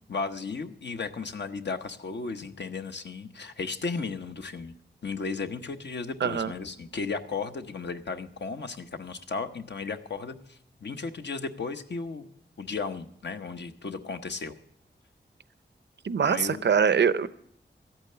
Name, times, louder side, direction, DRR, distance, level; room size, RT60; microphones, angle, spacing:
voice 1, 0.1-4.7 5.0-12.3 12.6-14.6 16.2-16.6, left 4 dB, 70° left, 7 dB, 0.9 m, -35 dB
voice 2, 6.2-6.5 16.0-17.3, right 6 dB, 70° right, 15 dB, 0.6 m, -23 dB
13.5 x 8.8 x 6.7 m, 0.70 s
wide cardioid pair, 105°, 19 cm